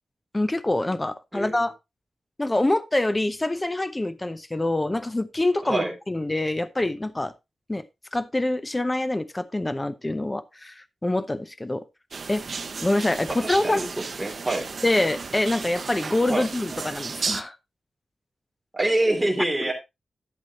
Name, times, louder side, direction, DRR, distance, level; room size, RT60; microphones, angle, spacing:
voice 1, 0.3-1.7 2.4-7.3 7.7-7.8 8.1-11.8 12.3-12.4 12.8-13.8 14.8-17.6, left 2 dB, 20° left, 0.7 m, -25 dB
voice 2, 1.3-1.7 5.6-5.9 13.4-13.9 14.2-14.6 16.3-16.5 18.7-19.7, right 2 dB, 10° right, 3.1 m, -25 dB
sound 1, 12.1-17.4, right 4 dB, 55° right, 0.8 m, -34 dB
11.5 x 7.2 x 2.9 m
wide cardioid pair, 125°, 0 cm